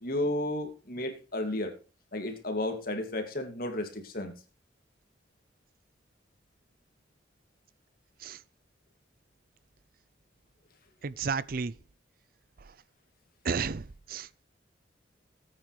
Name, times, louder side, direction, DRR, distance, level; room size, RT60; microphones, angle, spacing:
voice 1, 0.0-1.7 2.1-4.3, left 1 dB, 50° left, 2.4 m, -33 dB
voice 2, 11.0-11.7 13.4-14.3, right 5 dB, 50° right, 0.5 m, -32 dB
18.5 x 9.0 x 3.3 m
head